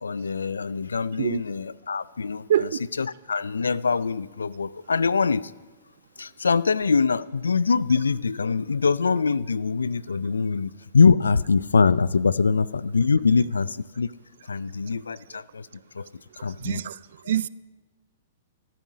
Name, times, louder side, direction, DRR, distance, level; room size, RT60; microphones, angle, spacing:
voice 1, 0.0-2.7 3.0-5.5 6.2-14.1 14.5-15.7 15.9-16.1 16.4-16.8, left 5 dB, 85° left, 0.3 m, -23 dB
voice 2, 16.6-17.0 17.3-17.5, right 10 dB, 65° right, 0.3 m, -24 dB
13.0 x 9.1 x 6.2 m
hypercardioid pair, 115°, 0 cm